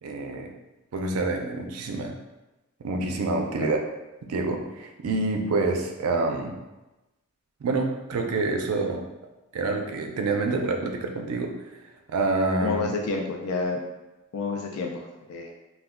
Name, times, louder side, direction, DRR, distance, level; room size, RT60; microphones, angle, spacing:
voice 1, 0.0-0.5 0.9-2.1 2.8-3.8 4.2-6.6 7.6-9.0 9.5-11.5 11.8-12.8, right 3 dB, 80° right, 3 dB, 0.4 m, -27 dB
voice 2, 12.6-13.8 14.3-15.5, left 3 dB, 80° left, 1 dB, 0.4 m, -29 dB
2.3 x 2.2 x 3.5 m, 1.0 s
head